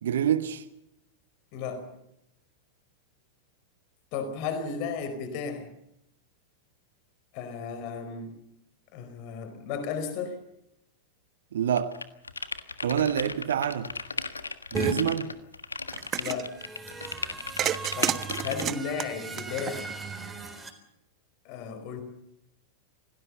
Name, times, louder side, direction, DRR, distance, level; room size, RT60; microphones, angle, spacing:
voice 1, 0.0-0.6 11.5-11.9 12.8-13.9 14.7-15.3, right 9 dB, 60° right, 1.3 m, -26 dB
voice 2, 1.5-1.9 4.1-5.7 7.3-8.4 8.9-10.4 16.1-16.5 17.9-19.9 21.4-22.0, left 5 dB, 45° left, 4.6 m, -34 dB
sound 1, 11.8-18.6, left 4 dB, 75° left, 1.5 m, -36 dB
sound 2, 14.7-14.9 16.3-20.7, right 3 dB, 10° right, 4.0 m, -37 dB
sound 3, 15.9-16.5 17.6-20.1, right 11 dB, 30° right, 1.2 m, -31 dB
27.0 x 18.5 x 6.9 m
figure-of-eight pair, 90°, 0 cm